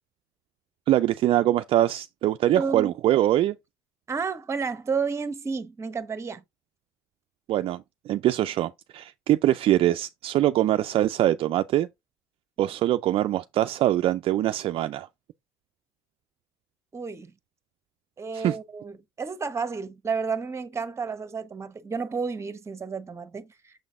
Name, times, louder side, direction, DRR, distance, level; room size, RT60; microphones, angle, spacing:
voice 1, 0.9-3.6 7.5-11.9 12.6-15.1 18.3-18.6, right 13 dB, 50° right, 0.4 m, -23 dB
voice 2, 2.6-2.9 4.1-6.4 16.9-17.3 18.2-23.7, right 5 dB, 25° right, 0.9 m, -31 dB
6.7 x 3.9 x 3.7 m
supercardioid pair, 90°, 12 cm